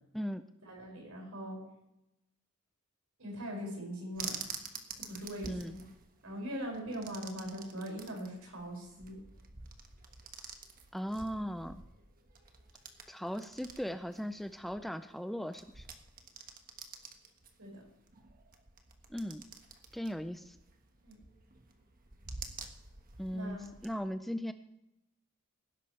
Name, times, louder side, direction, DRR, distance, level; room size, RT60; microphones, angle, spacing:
voice 1, 0.1-0.5 5.5-5.8 10.9-11.8 13.1-15.9 19.1-19.4 19.9-20.6 23.2-24.5, equal, ahead, 9 dB, 0.4 m, -38 dB
voice 2, 0.7-1.6 3.2-4.4 5.1-5.8 6.2-9.2 17.6-17.8 21.0-21.2 23.3-23.7, equal, 65° right, 0 dB, 5.8 m, -41 dB
sound 1, 4.1-23.9, right 5 dB, 40° right, 1.4 m, -49 dB
19.0 x 11.0 x 3.3 m, 0.86 s
head